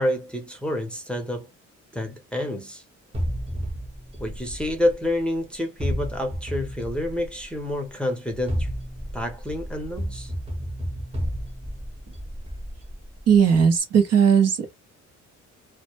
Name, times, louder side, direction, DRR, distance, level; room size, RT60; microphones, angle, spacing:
voice 1, 0.0-1.5 1.9-2.8 4.2-8.7 9.1-10.3, left 1 dB, 5° left, 0.7 m, -28 dB
sound 1, 3.1-5.3 5.8-7.6 8.3-13.4, equal, 20° right, 0.9 m, -32 dB
voice 2, 13.3-14.7, right 7 dB, 55° right, 0.7 m, -17 dB
2.1 x 2.1 x 2.9 m
cardioid pair, 90°, 30 cm